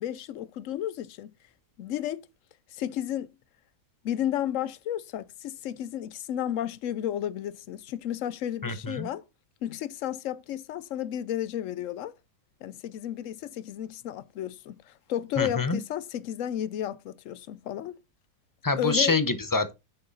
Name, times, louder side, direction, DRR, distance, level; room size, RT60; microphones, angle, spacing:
voice 1, 0.0-1.3 1.8-2.2 2.7-3.3 4.0-9.2 9.6-12.1 12.6-18.0 18.8-19.1, left 11 dB, 65° left, 0.8 m, -32 dB
voice 2, 8.6-9.1 15.4-15.8 18.6-19.7, left 3 dB, 25° left, 0.4 m, -26 dB
9.5 x 6.6 x 4.0 m
omnidirectional pair, 1.7 m